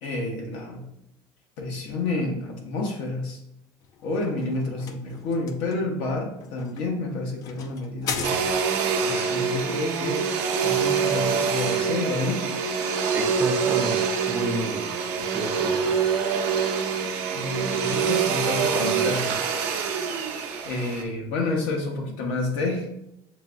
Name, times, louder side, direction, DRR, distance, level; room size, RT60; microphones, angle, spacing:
voice 1, 0.0-0.8 1.6-3.4 4.0-8.4 9.0-10.2 10.6-12.5 15.1-15.2 17.3-19.4 20.6-22.9, left 2 dB, 75° left, 0 dB, 1.1 m, -29 dB
sound 1, 3.8-8.9, left 6 dB, 45° left, 0.4 m, -37 dB
Domestic sounds home sounds, 8.2-21.0, right 6 dB, 80° right, 0.7 m, -25 dB
voice 2, 13.1-14.9 15.3-15.9, right 3 dB, 25° right, 3 dB, 0.5 m, -30 dB
6.7 x 2.3 x 2.5 m, 0.83 s
cardioid pair, 140°, 9 cm